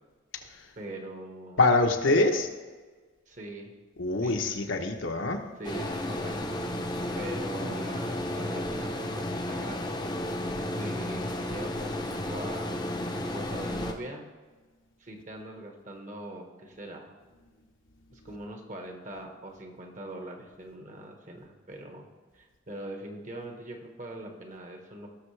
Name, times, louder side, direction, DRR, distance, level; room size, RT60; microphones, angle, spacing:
voice 1, 0.8-1.6 2.0-2.3 3.3-3.7 4.2-4.4 5.6-6.6 7.1-10.0 10.2-12.8 13.3-14.3 15.0-17.1 18.1-25.1, right 1 dB, 40° right, 3 dB, 1.4 m, -42 dB
voice 2, 1.6-2.5 4.0-5.4, left 2 dB, 75° left, 4 dB, 1.1 m, -24 dB
sound 1, 5.6-13.9, left 1 dB, 20° left, 0.8 m, -33 dB
17.5 x 6.6 x 3.3 m, 1.4 s
head